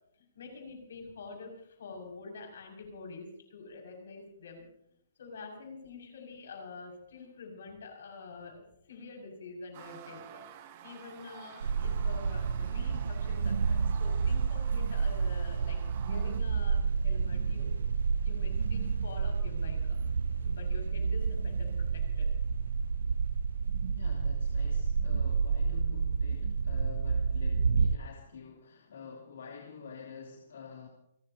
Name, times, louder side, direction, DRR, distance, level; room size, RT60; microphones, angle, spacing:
voice 1, 0.2-4.6 5.2-10.4 10.8-17.8 18.2-20.0 20.4-22.3, left 4 dB, 60° left, 1 dB, 6.2 m, -47 dB
sound 1, 9.7-16.4, right 9 dB, 25° right, 1.1 m, -51 dB
sound 2, 11.6-28.0, right 5 dB, 80° right, 0.6 m, -30 dB
voice 2, 23.9-30.9, left 6 dB, 80° left, -2 dB, 3.0 m, -48 dB
29.0 x 15.0 x 2.8 m, 0.75 s
hypercardioid pair, 180°, 0 cm